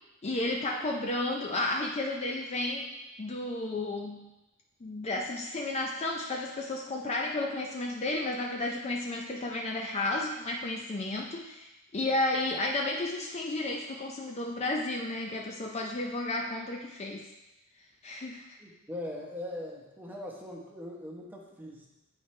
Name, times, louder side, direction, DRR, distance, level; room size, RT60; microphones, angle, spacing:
voice 1, 0.2-2.9 3.2-4.2 4.8-17.3 18.0-18.6, left 2 dB, 30° left, 0 dB, 0.4 m, -32 dB
voice 2, 18.6-21.9, left 1 dB, 10° right, -2 dB, 1.0 m, -41 dB
9.1 x 4.4 x 3.2 m, 1.0 s
head